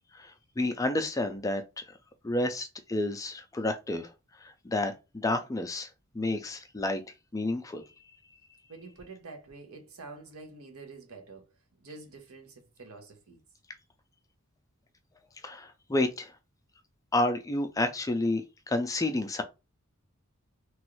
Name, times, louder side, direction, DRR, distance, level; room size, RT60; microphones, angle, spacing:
voice 1, 0.2-1.8 2.2-4.1 4.4-5.9 6.1-7.0 7.3-7.8 15.4-16.3 17.1-19.4, left 2 dB, 15° left, 0.4 m, -30 dB
voice 2, 8.7-11.5 11.8-13.4, right 3 dB, 85° right, 0.8 m, -47 dB
3.0 x 2.4 x 3.0 m
head